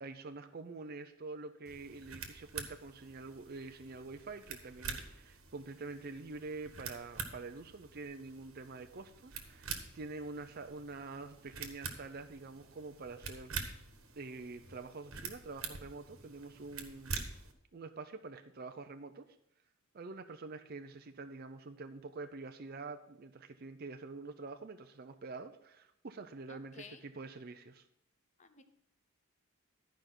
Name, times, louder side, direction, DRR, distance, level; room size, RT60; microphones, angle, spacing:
voice 1, 0.0-13.7 14.2-17.2 17.7-19.3 19.9-27.8, right 3 dB, 45° right, 8 dB, 0.5 m, -46 dB
sound 1, 1.6-17.5, right 5 dB, 65° right, 1.3 m, -46 dB
voice 2, 26.5-27.1 28.4-28.6, left 5 dB, 30° left, 9 dB, 0.7 m, -54 dB
12.0 x 5.2 x 6.0 m, 0.77 s
head